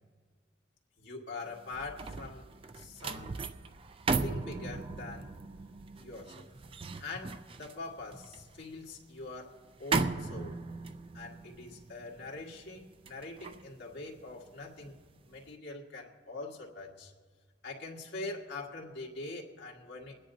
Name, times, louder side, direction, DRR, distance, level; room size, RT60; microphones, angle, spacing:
voice 1, 1.0-2.5 2.7-3.3 4.2-5.3 6.0-6.5 7.0-9.5 9.8-10.6 11.1-15.0 15.3-17.1 17.6-20.2, left 3 dB, 65° left, -3 dB, 1.9 m, -43 dB
sound 1, 1.5-14.8 15.2-15.5, right 3 dB, 30° right, 0.4 m, -38 dB
28.5 x 10.0 x 2.7 m, 1.4 s
head